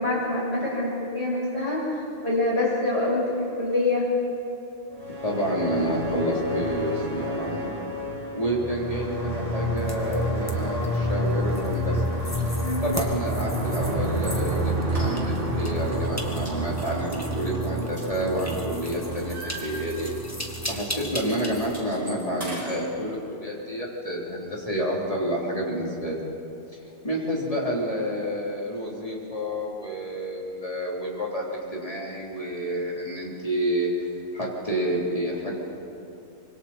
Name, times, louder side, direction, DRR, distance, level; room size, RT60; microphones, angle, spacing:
voice 1, 0.0-4.1 12.6-12.8, left 2 dB, 60° left, -5 dB, 6.9 m, -26 dB
sound 1, 4.9-21.8, right 1 dB, 85° right, 2.8 m, -29 dB
voice 2, 5.2-7.7 8.3-12.0 12.8-20.1 20.7-26.2 27.0-33.9 34.3-35.6, equal, 30° left, -4 dB, 3.7 m, -29 dB
sound 2, 9.8-21.8, equal, 15° left, 1.8 m, -39 dB
sound 3, 14.1-14.4 14.9-15.6 15.9-16.2 16.5-18.5 18.8-20.3 20.6-20.8 21.0-22.8, right 1 dB, 30° right, 5.1 m, -41 dB
25.5 x 24.0 x 4.4 m, 2.7 s
omnidirectional pair, 1.2 m